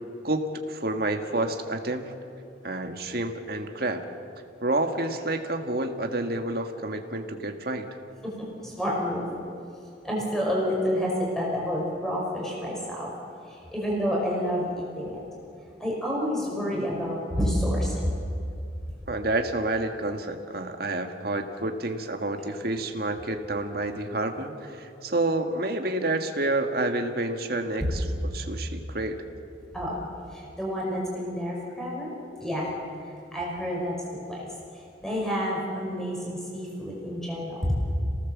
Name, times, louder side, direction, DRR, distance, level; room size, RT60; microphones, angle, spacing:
voice 1, 0.2-2.1 2.6-4.1 4.6-7.9 16.7-16.9 19.1-28.1 28.3-29.2, right 2 dB, 55° right, 5 dB, 1.8 m, -29 dB
voice 2, 8.2-9.3 10.0-13.1 13.5-15.2 15.8-18.3 29.7-32.1 32.4-32.7 33.3-34.0 34.3-34.5 35.0-37.8, equal, 5° left, -3 dB, 5.8 m, -29 dB
27.5 x 18.5 x 7.4 m, 2.6 s
head